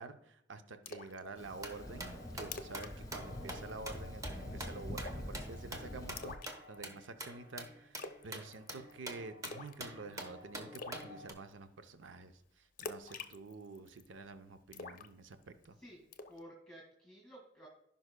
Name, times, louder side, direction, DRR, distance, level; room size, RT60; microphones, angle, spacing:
voice 1, 0.0-6.3 6.7-15.8, right 3 dB, 80° right, 9 dB, 0.6 m, -49 dB
Splash splatter, 0.9-1.2 1.6-1.7 2.1-2.2 2.4-2.9 3.2-3.4 3.7-4.1 5.0-5.3 6.2-7.0 8.0-8.3 8.5-8.9 9.4-9.8 10.1-10.2 10.7-11.0 12.8-14.1 14.7-15.6 16.1-16.4, left 4 dB, 45° left, 0.6 m, -46 dB
Thunder, 1.4-6.4, left 1 dB, 20° left, 0.9 m, -46 dB
sound 1, 1.6-11.3, right 1 dB, 20° right, 0.9 m, -47 dB
voice 2, 15.8-17.7, equal, 5° left, -3 dB, 1.9 m, -54 dB
15.5 x 5.4 x 2.2 m, 0.78 s
head